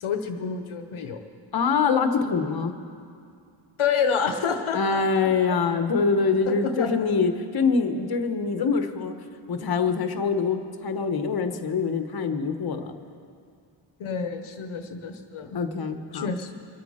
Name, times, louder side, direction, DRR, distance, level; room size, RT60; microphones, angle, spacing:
voice 1, 0.0-1.2 3.8-5.0 5.5-5.6 6.5-6.9 14.0-15.6 16.1-16.5, left 6 dB, 80° left, 6 dB, 1.0 m, -28 dB
voice 2, 1.5-2.7 4.7-9.1 9.5-12.9 15.5-16.3, left 5 dB, 50° left, 7 dB, 1.1 m, -24 dB
24.5 x 8.4 x 4.9 m, 2.3 s
wide cardioid pair, 95°, 49 cm